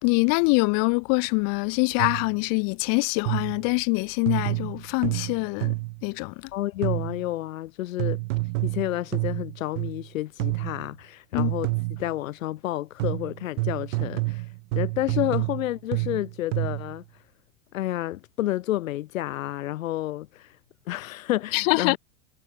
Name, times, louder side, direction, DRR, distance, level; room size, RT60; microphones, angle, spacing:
voice 1, 0.0-5.8 6.0-6.5 11.3-11.5 21.5-22.0, left 35 dB, 60° left, 2.8 m, -24 dB
sound 1, 2.0-2.4 3.3-3.7 4.3-6.1 6.8-7.3 8.0-10.1 10.4-10.9 11.4-12.2 13.0-17.0, right 24 dB, 65° right, 6.0 m, -29 dB
voice 2, 6.5-8.2 8.6-14.4 14.7-17.0 17.7-20.5 20.9-22.0, left 15 dB, 80° left, 2.7 m, -30 dB
hypercardioid pair, 110°, 39 cm